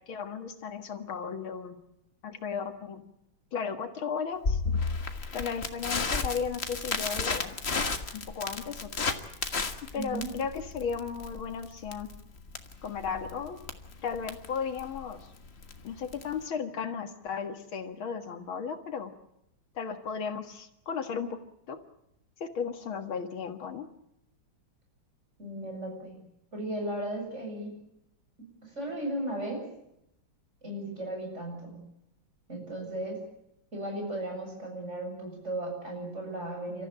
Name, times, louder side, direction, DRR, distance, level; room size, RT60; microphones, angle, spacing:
voice 1, 0.1-1.8 2.2-3.0 3.5-4.6 5.3-7.6 8.1-9.2 9.9-12.1 12.8-13.6 14.0-15.3 15.8-19.1 19.8-21.4 21.7-21.8 22.4-23.9, left 6 dB, 80° left, 7 dB, 2.6 m, -35 dB
Crackle, 4.4-16.4, left 4 dB, 35° left, 1.6 m, -33 dB
voice 2, 10.0-10.3 25.4-26.2 26.5-27.8 28.4-29.6 30.6-31.9 32.5-33.2 33.7-36.9, right 1 dB, 35° right, 1 dB, 7.8 m, -36 dB
30.0 x 14.5 x 8.9 m, 0.80 s
omnidirectional pair, 2.2 m